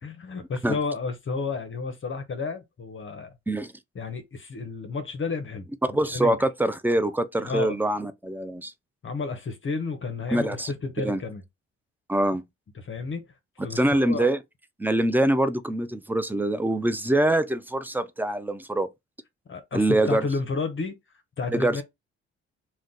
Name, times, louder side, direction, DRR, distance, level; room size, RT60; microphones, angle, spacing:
voice 1, 0.0-3.3 3.9-6.4 7.4-7.8 9.0-11.4 12.7-13.3 13.6-14.3 19.5-21.0 21.4-21.8, left 4 dB, 40° left, 0.7 m, -31 dB
voice 2, 5.9-8.7 10.3-10.7 11.0-11.2 12.1-12.4 13.7-14.4 14.8-18.9 19.7-20.3 21.5-21.8, right 1 dB, 5° right, 0.4 m, -24 dB
2.4 x 2.2 x 3.8 m
supercardioid pair, 55°, 31 cm